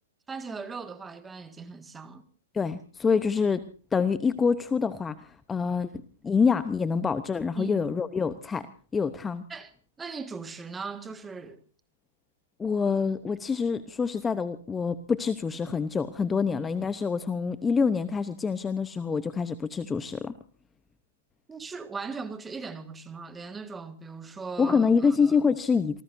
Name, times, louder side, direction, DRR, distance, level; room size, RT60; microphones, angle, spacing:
voice 1, 0.3-2.2 7.5-7.8 9.5-9.7 10.0-11.6 21.5-25.3, right 4 dB, 10° right, 1.7 m, -39 dB
voice 2, 2.5-3.6 3.9-5.2 5.5-5.9 6.2-8.7 8.9-9.4 12.6-20.3 24.6-26.0, left 5 dB, 15° left, 0.8 m, -26 dB
27.5 x 19.0 x 2.6 m
hypercardioid pair, 130°, 0 cm